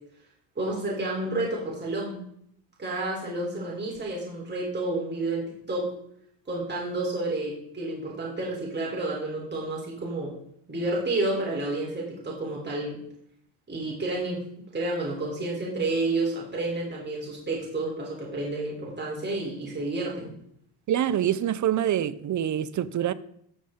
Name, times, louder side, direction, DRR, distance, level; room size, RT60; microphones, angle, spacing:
voice 1, 0.5-2.2 2.8-5.9 6.5-10.3 10.7-13.0 13.7-14.4 14.7-20.3, right 2 dB, 25° right, 3.4 m, -30 dB
voice 2, 20.9-23.1, right 10 dB, 45° right, 0.6 m, -25 dB
13.0 x 6.9 x 3.7 m
cardioid pair, 110°, 43 cm